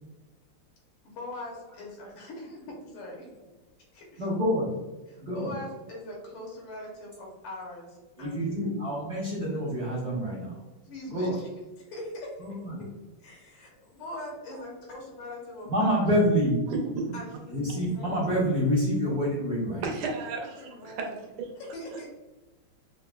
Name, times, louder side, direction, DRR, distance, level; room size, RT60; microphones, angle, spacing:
voice 1, 1.0-3.3 3.9-4.3 5.1-8.7 10.8-11.5 11.8-12.7 13.2-16.1 17.1-18.2 18.7-18.8 20.6-21.2 21.5-22.1, left 1 dB, 85° left, -1 dB, 1.7 m, -42 dB
voice 2, 4.2-4.7 5.2-5.5 8.2-10.6 11.1-11.4 12.4-12.8 15.6-16.6 17.5-19.9, equal, 40° right, -9 dB, 0.6 m, -27 dB
voice 3, 16.7-17.2 19.8-21.1 21.4-21.5, right 4 dB, 85° right, 1 dB, 1.5 m, -33 dB
5.2 x 2.0 x 2.2 m, 1.2 s
omnidirectional pair, 2.3 m